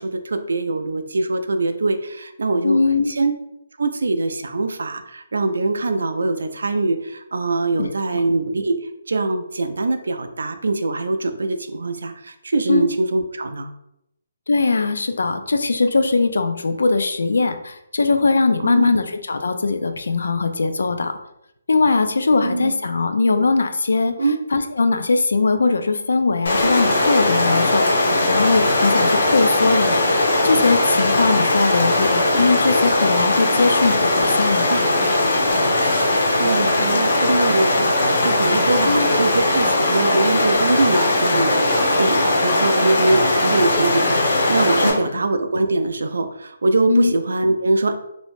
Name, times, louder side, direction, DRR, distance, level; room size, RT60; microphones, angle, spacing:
voice 1, 0.0-2.8 3.1-3.3 3.8-8.8 9.1-13.7 18.6-19.0 22.4-22.7 24.2-24.4 29.6-29.7 34.7-34.8 35.7-48.0, right 2 dB, 85° right, 8 dB, 0.3 m, -23 dB
voice 2, 2.6-3.1 7.8-8.2 12.7-12.9 14.5-21.2 21.7-24.1 24.5-34.7 38.8-39.1 44.8-44.9 46.9-47.1, left 3 dB, 85° left, 8 dB, 0.3 m, -20 dB
Stream, 26.5-44.9, left 2 dB, 50° left, 0.7 m, -19 dB
2.6 x 2.0 x 3.0 m, 0.82 s
hypercardioid pair, 175°, 0 cm